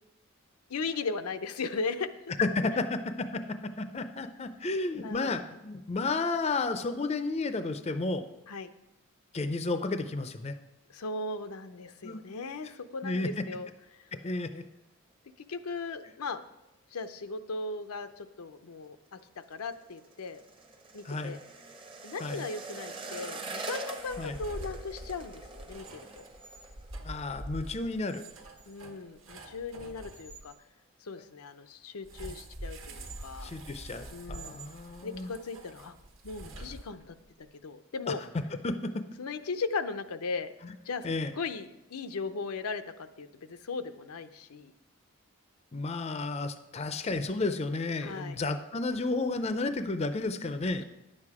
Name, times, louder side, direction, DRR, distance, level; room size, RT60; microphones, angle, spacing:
voice 1, 0.7-2.1 2.6-2.8 5.0-5.4 8.5-8.7 10.9-14.1 15.5-16.4 16.9-19.2 19.5-20.4 20.9-21.4 22.0-25.9 26.1-26.2 28.7-30.5 31.0-33.5 34.1-34.6 35.0-35.9 36.2-38.2 39.2-40.5 40.8-41.1 41.4-44.7 48.0-48.4, left 4 dB, 90° left, 9 dB, 0.6 m, -37 dB
voice 2, 2.4-8.2 9.3-10.6 12.0-12.2 13.0-13.4 14.1-14.6 21.0-21.4 22.2-22.4 24.2-24.4 27.0-28.2 33.4-35.3 38.1-38.2 38.6-39.0 41.0-41.3 45.7-50.8, left 3 dB, 30° left, 10 dB, 0.4 m, -32 dB
sound 1, 19.1-28.1 28.4-28.7 29.0-29.5 29.9-30.0, right 3 dB, 25° right, 0.7 m, -44 dB
sound 2, 24.0-30.5 32.0-37.3, right 1 dB, 65° right, 1.3 m, -45 dB
10.0 x 7.7 x 4.8 m, 0.94 s
head